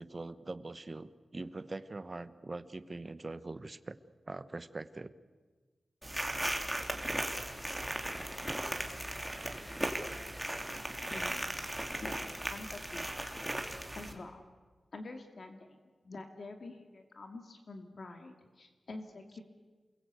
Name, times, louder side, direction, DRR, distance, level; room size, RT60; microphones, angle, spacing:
voice 1, 0.0-4.0 4.3-5.1, right 2 dB, 30° right, 13 dB, 1.1 m, -43 dB
sound 1, 6.0-14.1, right 1 dB, 5° right, 2.8 m, -37 dB
sound 2, 7.4-12.8, equal, 15° left, 3.5 m, -54 dB
voice 2, 11.0-11.5 12.0-13.1 13.9-14.4 14.9-15.8 16.0-19.4, left 2 dB, 50° left, 5 dB, 2.3 m, -47 dB
28.5 x 22.0 x 8.2 m, 1.4 s
wide cardioid pair, 140°, 0 cm